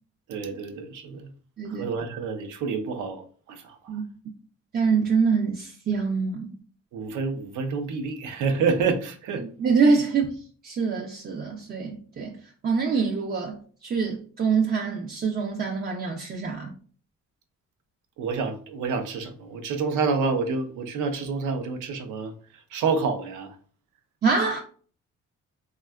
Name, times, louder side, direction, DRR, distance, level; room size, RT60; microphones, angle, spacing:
voice 1, 0.3-1.3 1.7-4.0 6.9-9.4 18.2-22.3 22.7-23.5, right 4 dB, 80° right, 0.5 m, -28 dB
voice 2, 1.6-1.9 3.9-4.0 4.7-6.6 9.4-10.4 10.6-12.4 12.6-16.7 24.2-24.6, right 5 dB, 35° right, 0.4 m, -25 dB
3.4 x 2.2 x 2.2 m
cardioid pair, 90°, 30 cm